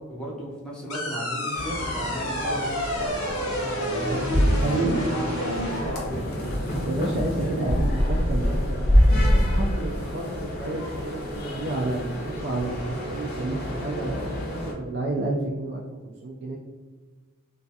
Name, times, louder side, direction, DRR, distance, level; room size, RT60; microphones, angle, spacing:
voice 1, 0.0-4.1 4.8-6.4, right 1 dB, 5° left, -6 dB, 0.5 m, -35 dB
sound 1, 0.9-5.9, equal, 90° left, 0.7 m, -29 dB
sound 2, 1.5-14.7, equal, 45° left, 0.6 m, -26 dB
voice 2, 4.6-5.2 6.8-8.8 9.2-16.6, right 2 dB, 50° right, -2 dB, 0.3 m, -30 dB
2.3 x 2.3 x 2.7 m, 1.3 s
head